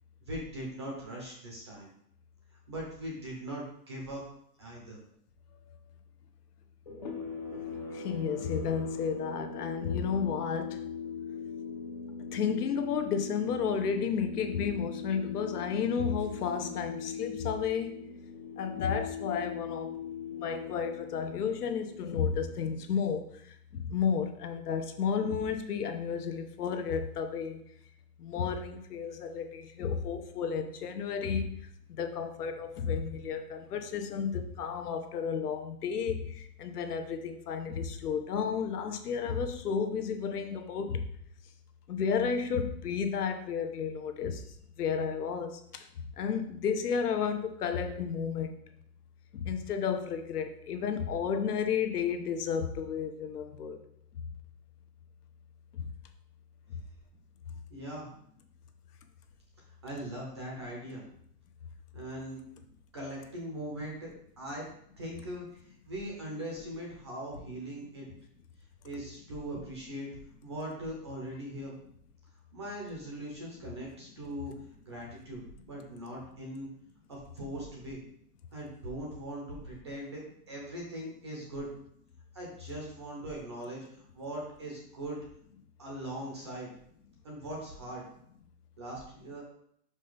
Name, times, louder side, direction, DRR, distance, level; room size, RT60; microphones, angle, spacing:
voice 1, 0.2-1.9 2.7-4.2 4.6-5.0 57.7-58.1 59.8-61.0 61.9-62.4 62.9-64.1 64.4-64.7 65.0-68.1 68.8-70.1 70.4-71.7 72.5-74.5 74.8-75.4 75.7-76.7 77.1-78.0 78.5-80.2 80.5-81.7 82.3-85.2 85.8-86.7 87.2-88.1 88.8-89.4, right 1 dB, 20° right, -2 dB, 0.6 m, -40 dB
sound 1, 6.9-23.1, left 6 dB, 30° left, 0.6 m, -40 dB
voice 2, 7.9-10.8 12.3-18.0 18.6-19.9 20.3-23.4 23.7-27.6 28.2-31.5 31.9-41.0 41.9-44.4 44.8-45.9 46.2-48.5 49.3-53.8 55.7-55.9, left 6 dB, 70° left, 7 dB, 1.0 m, -32 dB
5.3 x 5.3 x 3.9 m, 0.69 s
hypercardioid pair, 180°, 47 cm